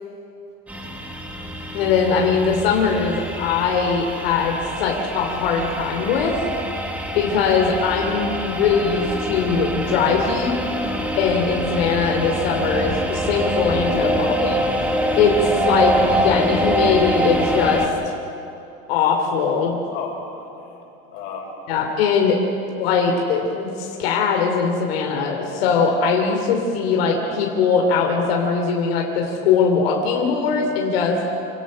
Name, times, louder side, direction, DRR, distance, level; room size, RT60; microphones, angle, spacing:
sound 1, 0.7-17.9, equal, 5° right, 1.5 m, -25 dB
voice 1, 1.7-6.4 7.1-10.6 11.1-14.6 15.2-15.4 15.6-18.1 18.9-19.8 21.7-22.4 22.8-31.2, left 5 dB, 85° left, 1 dB, 3.0 m, -21 dB
voice 2, 13.6-14.4 19.9-20.8 21.1-21.5, left 4 dB, 45° left, -1 dB, 5.6 m, -34 dB
28.0 x 17.5 x 6.4 m, 2.9 s
supercardioid pair, 165°, 29 cm